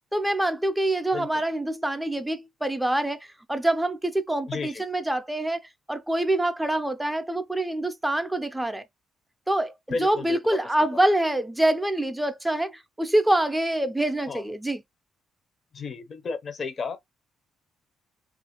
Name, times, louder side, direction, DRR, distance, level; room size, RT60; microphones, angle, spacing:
voice 1, 0.1-5.6 5.9-8.8 9.5-14.8, right 1 dB, 10° right, 0.5 m, -25 dB
voice 2, 4.5-4.8 9.9-10.6 14.3-14.4 15.7-17.0, left 4 dB, 45° left, 0.6 m, -32 dB
2.7 x 2.5 x 2.8 m
cardioid pair, 90°, 0 cm